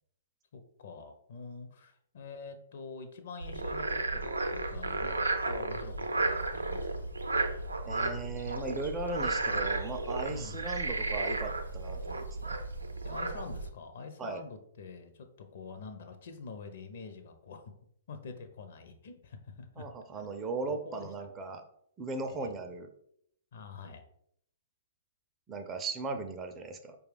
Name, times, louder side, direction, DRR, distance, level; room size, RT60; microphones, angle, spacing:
voice 1, 0.5-7.1 10.3-10.6 12.0-12.1 13.0-17.7 18.1-19.9 20.1-20.2 20.7-21.1 22.3-22.5 23.5-24.0, left 4 dB, 55° left, 7 dB, 0.6 m, -46 dB
Frog, 3.4-13.7, right 3 dB, 85° right, 0.5 m, -33 dB
voice 2, 7.8-12.6 14.2-14.4 19.8-21.6 22.0-22.9 25.5-27.0, right 3 dB, 20° right, 6 dB, 0.4 m, -37 dB
4.7 x 2.3 x 3.2 m, 0.70 s
figure-of-eight pair, 120°, 0 cm